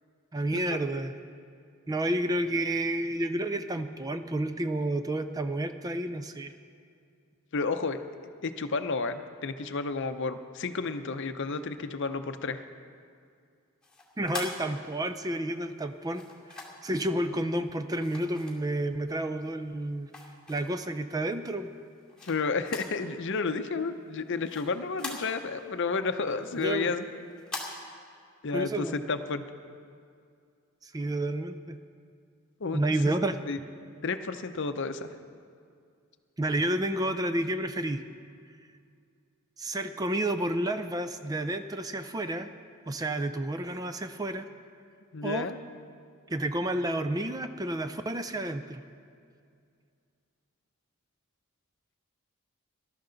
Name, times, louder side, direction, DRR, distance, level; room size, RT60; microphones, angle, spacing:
voice 1, 0.3-1.1 1.9-6.5 14.2-16.2 16.5-20.1 20.5-21.7 26.5-26.9 28.5-29.0 30.8-31.8 32.7-33.4 36.4-38.0 39.6-42.5 42.9-44.5 45.2-45.5 46.3-48.8, right 1 dB, 15° right, 9 dB, 0.4 m, -30 dB
voice 2, 7.5-8.0 8.4-12.6 22.2-27.1 28.4-29.4 32.6-32.8 33.5-33.6 34.0-35.1 45.1-45.6, left 4 dB, 55° left, 9 dB, 0.6 m, -31 dB
sound 1, 13.8-15.3 16.1-17.0 18.0-19.1 19.5-20.9 21.4-23.0 23.3-23.4 23.8-25.7 26.1-27.7, left 3 dB, 5° left, 2.2 m, -42 dB
19.5 x 12.5 x 3.9 m, 2.3 s
head